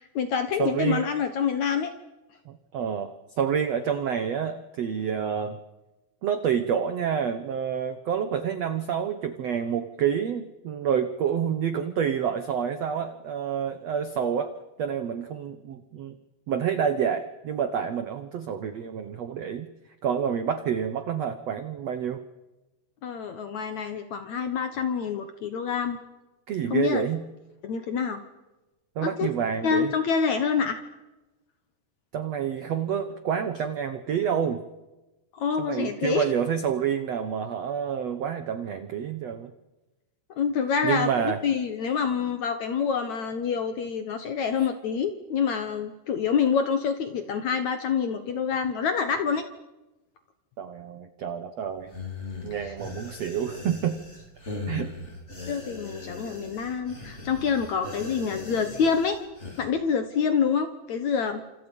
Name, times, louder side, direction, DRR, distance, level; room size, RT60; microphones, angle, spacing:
voice 1, 0.0-1.9 23.0-26.0 26.7-27.0 27.6-28.2 29.0-29.3 29.6-30.8 35.3-36.3 40.4-49.5 52.6-52.8 55.5-59.2 59.6-61.4, left 6 dB, 65° left, 8 dB, 1.9 m, -27 dB
voice 2, 0.6-1.1 2.4-5.6 6.2-14.5 14.8-16.2 16.5-19.7 20.0-22.2 26.5-27.2 28.9-29.9 32.1-34.6 35.6-39.5 40.8-41.4 50.6-51.9 52.4-54.0 54.7-54.9, right 8 dB, 85° right, 9 dB, 1.4 m, -28 dB
zombie young man lament, 51.9-59.6, left 3 dB, 15° left, 4.1 m, -39 dB
30.0 x 27.5 x 5.4 m, 1.1 s
omnidirectional pair, 4.9 m